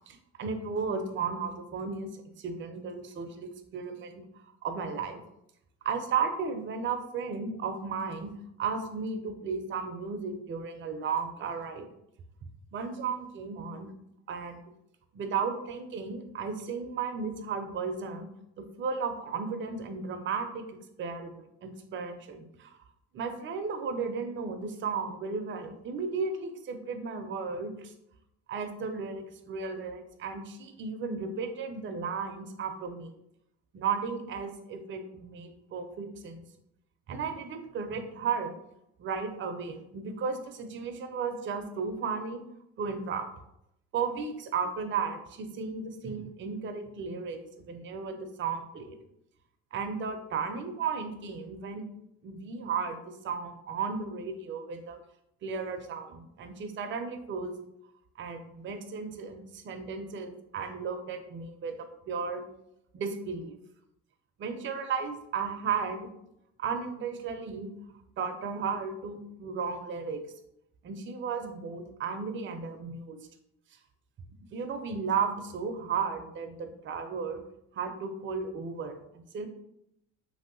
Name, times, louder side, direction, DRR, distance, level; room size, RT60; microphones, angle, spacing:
voice 1, 0.1-4.2 4.6-5.2 5.8-8.3 8.6-11.9 12.7-13.9 14.3-14.6 15.1-18.3 18.8-22.7 23.1-27.9 28.5-33.1 33.7-36.4 37.1-38.5 39.0-42.4 42.8-43.2 43.9-49.0 49.7-51.8 52.2-55.0 55.4-57.5 58.2-62.4 62.9-63.6 64.4-66.1 66.6-67.7 68.2-70.2 70.8-73.2 74.5-77.4 77.7-79.0 79.3-79.5, right 5 dB, 35° right, 7 dB, 0.4 m, -34 dB
3.0 x 2.7 x 2.6 m, 0.79 s
cardioid pair, 95°, 36 cm